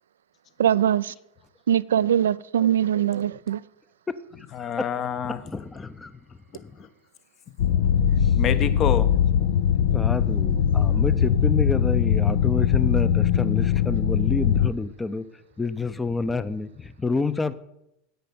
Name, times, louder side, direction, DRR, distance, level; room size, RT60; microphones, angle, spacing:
voice 1, 0.6-1.1 1.7-3.6, right 10 dB, 85° right, 0.4 m, -22 dB
voice 2, 4.5-5.4 6.5-6.9 7.6-7.7 8.4-9.1 9.4-9.5 10.9-11.2, left 8 dB, 40° left, 1.0 m, -29 dB
voice 3, 5.4-6.2 6.6-6.8 9.9-15.3 15.6-17.5, left 3 dB, 15° left, 0.7 m, -28 dB
sound 1, 7.6-14.7, left 9 dB, 75° left, 0.6 m, -21 dB
10.5 x 8.4 x 5.2 m
hypercardioid pair, 95°, 0 cm